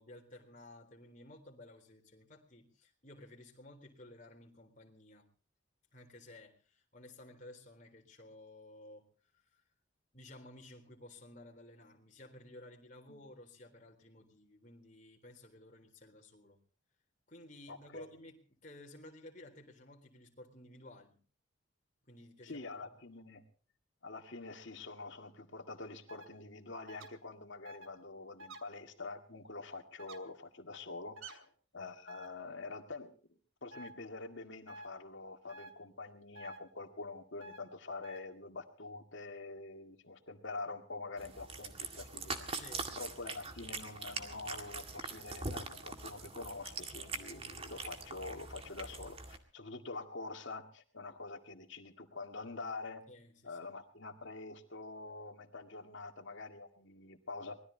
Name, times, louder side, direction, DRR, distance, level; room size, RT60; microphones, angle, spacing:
voice 1, 0.0-5.3 5.9-9.1 9.3-9.6 10.1-16.6 17.3-21.2 22.0-22.7 42.5-43.0 53.1-53.7, left 1 dB, 40° left, 2 dB, 3.8 m, -55 dB
voice 2, 17.7-18.1 22.4-23.4 24.0-33.1 33.6-42.3 43.0-53.0 53.4-57.6, left 3 dB, 65° left, 5 dB, 2.2 m, -46 dB
sound 1, 26.1-26.3 26.9-27.1 27.6-27.9 28.4-28.6 30.0-30.2 31.2-31.4 32.1-32.3 33.7-33.9 34.7-34.9 35.5-35.7 36.4-36.6 37.4-37.6 38.0-38.2, right 1 dB, 85° right, 2.5 m, -49 dB
Cat, 41.2-49.4, right 3 dB, 30° right, 2.0 m, -43 dB
24.5 x 20.0 x 2.9 m, 0.39 s
head